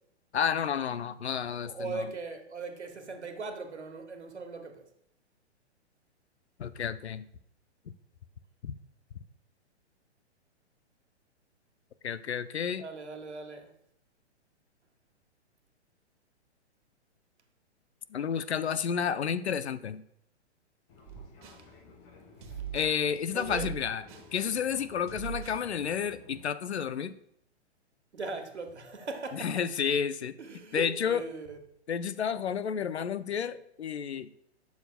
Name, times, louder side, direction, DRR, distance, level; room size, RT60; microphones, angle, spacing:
voice 1, 0.3-2.1 6.6-7.3 8.6-8.7 12.0-12.8 18.1-20.0 22.7-24.0 24.3-27.2 29.3-30.4 30.7-31.2 31.9-34.3, left 7 dB, 70° left, 0.6 m, -31 dB
voice 2, 1.6-4.9 12.8-13.7 23.3-23.7 28.1-29.5 30.4-31.6, right 4 dB, 75° right, 1.4 m, -39 dB
Fixed-wing aircraft airplane, 20.9-26.5, left 4 dB, 10° left, 0.4 m, -54 dB
sound 1, 21.1-21.7 22.4-23.0 23.4-24.3 25.1-25.7, right 9 dB, 45° right, 1.3 m, -41 dB
11.5 x 7.2 x 2.2 m
figure-of-eight pair, 115°, 34 cm